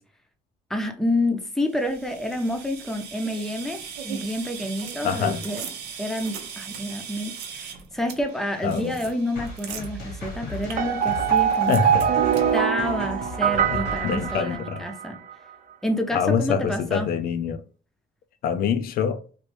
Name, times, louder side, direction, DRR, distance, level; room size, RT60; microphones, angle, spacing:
voice 1, 0.7-5.6 6.0-11.8 12.5-15.2 15.8-17.1, left 1 dB, ahead, 0.6 m, -28 dB
sound 1, 1.7-12.6, right 7 dB, 85° right, 0.7 m, -39 dB
voice 2, 5.0-5.4 8.6-9.0 11.7-12.1 13.7-14.9 16.1-17.6 18.4-19.3, left 7 dB, 60° left, 0.4 m, -25 dB
sound 2, 9.4-14.6, left 2 dB, 80° left, 1.3 m, -37 dB
sound 3, 10.8-15.1, right 8 dB, 50° right, 0.4 m, -23 dB
3.0 x 2.5 x 3.2 m
cardioid pair, 110°, 17 cm